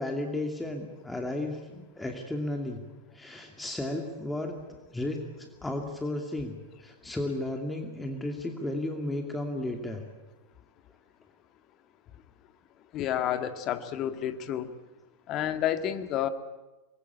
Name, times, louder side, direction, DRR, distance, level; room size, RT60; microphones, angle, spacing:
voice 1, 0.0-2.8 3.1-4.6 4.9-6.6 6.8-10.0, left 1 dB, 5° left, 3 dB, 2.5 m, -34 dB
voice 2, 12.9-14.7 15.3-16.3, left 11 dB, 35° left, 9 dB, 1.9 m, -30 dB
25.0 x 21.5 x 8.5 m, 1.1 s
figure-of-eight pair, 90°, 0 cm